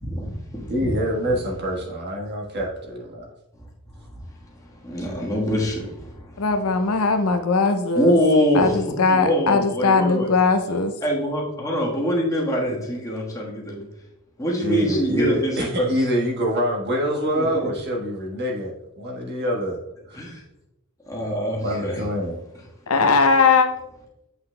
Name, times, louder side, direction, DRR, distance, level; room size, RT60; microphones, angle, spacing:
voice 1, 0.0-0.6 4.8-6.4 7.9-8.7 9.1-10.3 11.0-13.8 14.4-16.0 17.3-17.7 20.1-20.4 21.1-22.0, equal, 15° left, -3 dB, 1.3 m, -24 dB
voice 2, 0.7-3.2 14.6-18.7 19.0-19.8 20.1-20.2 21.6-22.4, equal, 50° right, -1 dB, 1.4 m, -25 dB
voice 3, 6.4-8.2 8.5-10.9 22.9-23.7, left 4 dB, 75° left, 7 dB, 0.6 m, -19 dB
8.0 x 5.7 x 2.2 m, 0.89 s
head